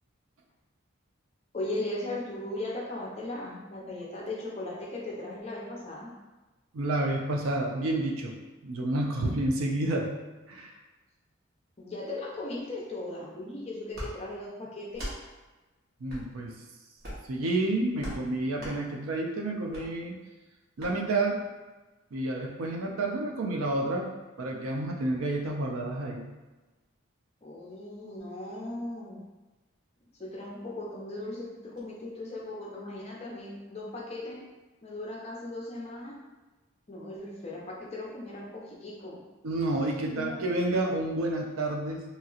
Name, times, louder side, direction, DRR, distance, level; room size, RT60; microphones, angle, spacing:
voice 1, 1.5-6.1 11.8-15.1 27.4-29.3 30.2-34.4 34.8-36.2 36.9-39.2 40.1-40.5, left 2 dB, 30° left, -3 dB, 0.5 m, -38 dB
voice 2, 6.7-8.3 8.6-10.1 10.5-10.7 16.0-16.5 17.3-20.1 20.8-21.4 22.1-24.1 24.4-26.2 39.4-42.0, right 2 dB, 85° right, 1 dB, 0.5 m, -29 dB
sound 1, 13.9-14.1 14.9-15.2 16.1-16.2 17.0-17.3 18.0-18.2 18.6-18.8 19.7-19.8 20.8-20.9, equal, 50° right, 1.0 m, -38 dB
2.9 x 2.8 x 2.4 m, 1.2 s
head